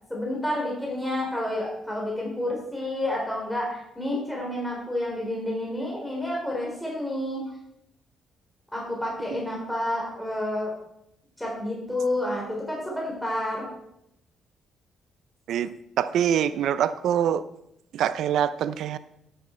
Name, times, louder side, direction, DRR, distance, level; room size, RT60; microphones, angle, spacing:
voice 1, 0.1-7.4 8.7-10.7 11.4-13.7, left 1 dB, 5° left, -2 dB, 3.8 m, -29 dB
voice 2, 16.0-17.4 17.9-19.0, right 9 dB, 75° right, 14 dB, 0.6 m, -24 dB
12.0 x 9.0 x 4.4 m, 0.79 s
cardioid pair, 90°, 0 cm